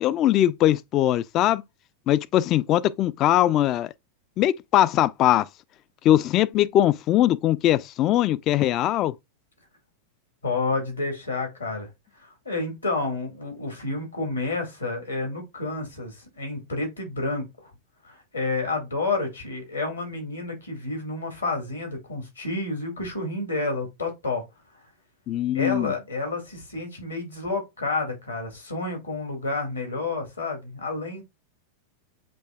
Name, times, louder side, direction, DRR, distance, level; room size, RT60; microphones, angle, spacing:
voice 1, 0.0-1.6 2.1-3.9 4.4-5.5 6.0-9.1 25.3-25.9, left 13 dB, 35° left, 0.3 m, -21 dB
voice 2, 10.4-11.9 12.1-17.7 18.0-24.4 25.5-31.2, left 3 dB, 80° left, 1.9 m, -30 dB
7.7 x 2.8 x 2.3 m
figure-of-eight pair, 90°, 0 cm